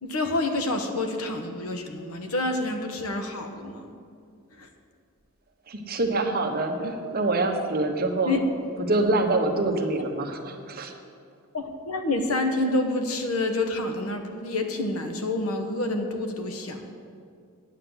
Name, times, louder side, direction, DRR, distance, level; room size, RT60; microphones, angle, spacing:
voice 1, 0.0-4.0 4.6-4.7 6.7-6.9 8.3-8.4 11.5-16.9, left 2 dB, 80° left, 5 dB, 1.3 m, -28 dB
voice 2, 5.7-8.4 8.8-10.9, right 2 dB, 45° right, 3 dB, 1.1 m, -25 dB
9.6 x 8.0 x 7.9 m, 2.3 s
head